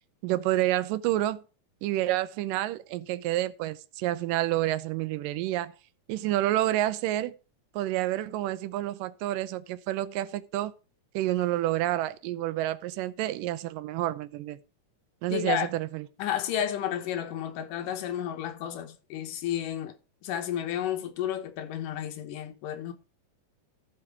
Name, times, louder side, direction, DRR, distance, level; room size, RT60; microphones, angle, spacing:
voice 1, 0.2-1.4 1.8-5.7 6.1-7.3 7.8-10.7 11.1-14.6 15.2-16.1, right 15 dB, 85° right, 2.3 m, -29 dB
voice 2, 15.3-15.7 16.2-22.9, left 10 dB, 80° left, 2.6 m, -32 dB
14.0 x 5.9 x 4.7 m
omnidirectional pair, 3.8 m